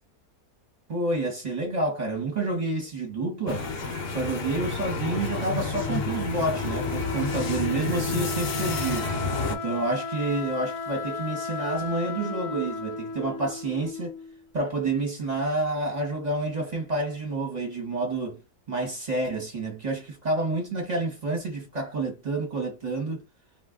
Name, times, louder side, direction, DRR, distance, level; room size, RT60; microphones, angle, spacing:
voice 1, 0.9-3.7 4.1-9.1 9.5-14.1 14.5-18.4 18.7-23.2, right 2 dB, 30° right, 0.9 m, -29 dB
sound 1, 3.5-9.6, left 3 dB, 50° left, 0.7 m, -30 dB
Wind instrument woodwind instrument, 5.7-14.4, left 4 dB, 75° left, 1.1 m, -35 dB
2.5 x 2.5 x 3.5 m
omnidirectional pair, 1.7 m